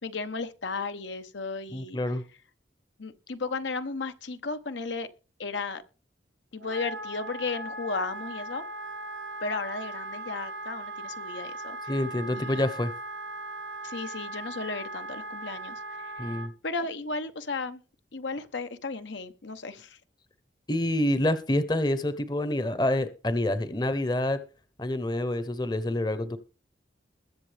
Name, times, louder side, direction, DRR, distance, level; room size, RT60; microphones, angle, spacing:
voice 1, 0.0-2.0 3.0-5.1 5.4-5.8 6.5-8.6 9.4-11.8 12.3-12.6 13.8-16.4 16.6-17.8 18.1-20.0, left 4 dB, 80° left, 1.0 m, -34 dB
voice 2, 1.7-2.2 11.9-12.9 16.2-16.5 20.7-24.4 24.8-26.4, left 1 dB, 20° left, 0.8 m, -27 dB
Wind instrument woodwind instrument, 6.6-16.5, right 2 dB, 90° right, 1.5 m, -38 dB
21.5 x 7.4 x 3.4 m
head